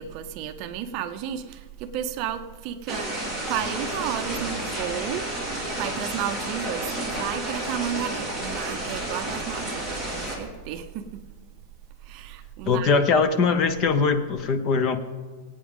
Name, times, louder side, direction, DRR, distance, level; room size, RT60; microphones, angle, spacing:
voice 1, 0.0-3.1 3.5-5.3 5.8-11.1 12.0-13.0, right 9 dB, 35° right, 0.7 m, -32 dB
sound 1, 2.9-10.4, right 1 dB, 10° left, 2.0 m, -31 dB
voice 2, 12.7-15.0, left 4 dB, 30° left, 0.6 m, -21 dB
22.0 x 8.7 x 3.7 m
supercardioid pair, 175°, 0 cm